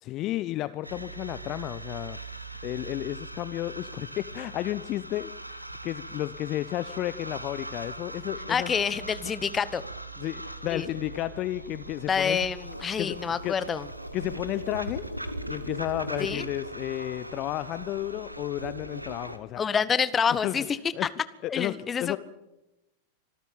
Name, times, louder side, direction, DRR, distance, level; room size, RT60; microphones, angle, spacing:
voice 1, 0.0-2.2 2.6-8.7 10.2-12.4 13.0-13.2 13.4-13.6 14.1-15.1 15.5-19.6 20.3-20.6 20.9-21.1 21.4-22.2, left 15 dB, 35° left, 15 dB, 0.7 m, -32 dB
sound 1, 0.8-19.4, right 1 dB, 90° right, 1.4 m, -40 dB
voice 2, 8.5-9.8 10.7-10.9 12.1-13.9 16.2-16.5 19.6-21.1 21.5-22.2, left 6 dB, 20° left, 16 dB, 1.1 m, -27 dB
25.5 x 13.5 x 9.0 m, 0.98 s
figure-of-eight pair, 90°, 0 cm